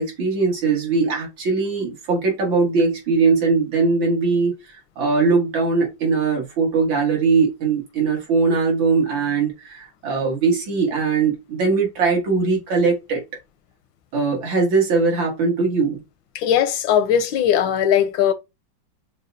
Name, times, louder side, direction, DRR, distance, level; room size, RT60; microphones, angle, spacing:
voice 1, 0.0-4.5 5.0-13.2 14.1-16.0, right 4 dB, 80° right, 2.4 m, -20 dB
voice 2, 16.3-18.3, left 9 dB, 85° left, 1.3 m, -19 dB
6.3 x 2.3 x 2.6 m
omnidirectional pair, 2.1 m